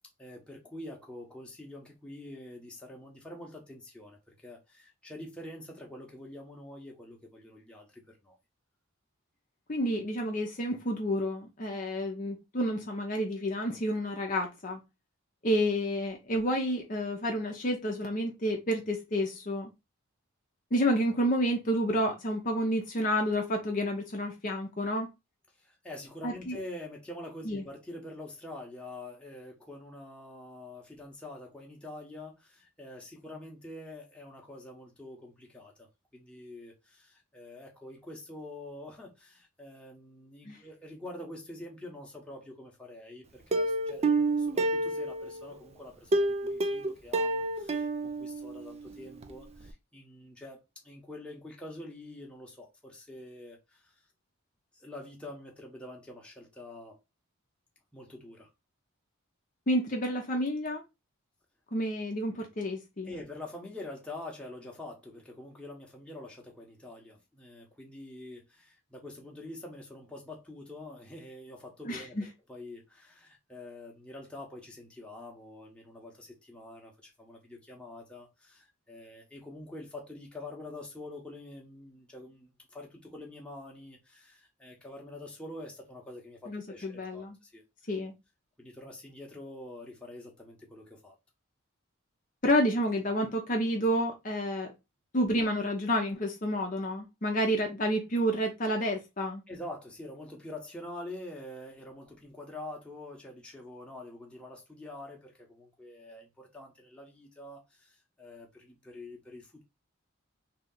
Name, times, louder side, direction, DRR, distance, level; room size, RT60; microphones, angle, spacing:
voice 1, 0.2-8.4 25.6-50.6 50.8-53.9 54.7-57.0 57.9-58.5 63.1-87.6 88.6-91.2 99.5-109.6, left 1 dB, 5° left, 0.9 m, -46 dB
voice 2, 9.7-14.8 15.4-19.7 20.7-25.1 26.2-26.6 27.5-27.6 40.5-40.6 59.7-60.8 61.7-63.1 71.8-72.2 86.5-87.4 87.9-88.1 92.4-94.7 95.1-99.4, equal, 40° left, 0.7 m, -30 dB
Plucked string instrument, 43.5-45.5 46.1-48.9 49.2-49.3 49.7-49.8, right 2 dB, 30° right, 0.4 m, -29 dB
3.2 x 2.8 x 3.8 m
head